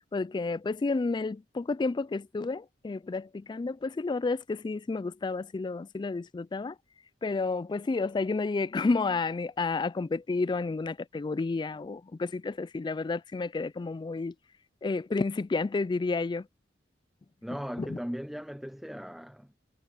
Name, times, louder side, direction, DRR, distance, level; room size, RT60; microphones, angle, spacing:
voice 1, 0.1-6.8 7.2-14.3 14.8-16.5 17.8-18.0, left 3 dB, 25° left, 0.3 m, -31 dB
voice 2, 17.4-19.6, equal, ahead, 0.8 m, -38 dB
head